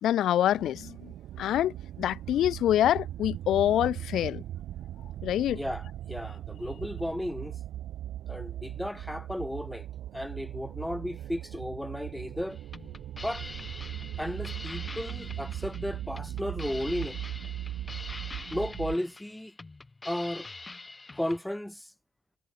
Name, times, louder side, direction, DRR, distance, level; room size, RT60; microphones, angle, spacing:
voice 1, 0.0-1.0 1.4-4.4 5.2-5.6, left 12 dB, 75° left, 0.3 m, -26 dB
sound 1, 0.5-19.0, right 12 dB, 80° right, 0.8 m, -39 dB
voice 2, 5.5-7.5 8.3-9.9 10.1-12.6 13.2-13.5 14.2-17.2 18.5-19.6 20.0-20.5 21.2-21.9, left 1 dB, 5° left, 0.7 m, -34 dB
sound 2, 12.5-21.4, left 3 dB, 25° left, 1.6 m, -44 dB
cardioid pair, 90°, 0 cm